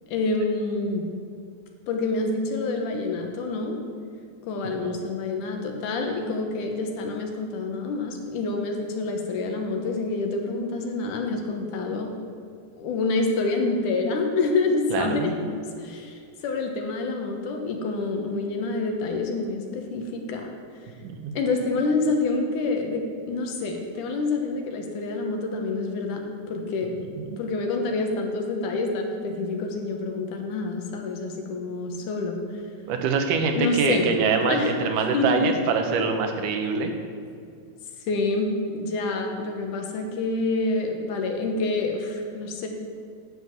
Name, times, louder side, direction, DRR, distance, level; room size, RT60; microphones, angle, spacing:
voice 1, 0.1-1.0 1.9-3.8 4.4-12.1 12.8-15.3 15.8-20.5 21.4-26.9 27.4-32.4 33.5-34.1 34.5-34.8 35.1-35.5 38.1-42.7, left 3 dB, 80° left, 3 dB, 2.7 m, -27 dB
voice 2, 14.9-15.4 21.0-21.4 27.0-27.4 32.9-36.9, right 5 dB, 85° right, 5 dB, 2.6 m, -25 dB
9.7 x 7.4 x 7.3 m, 2.2 s
omnidirectional pair, 3.6 m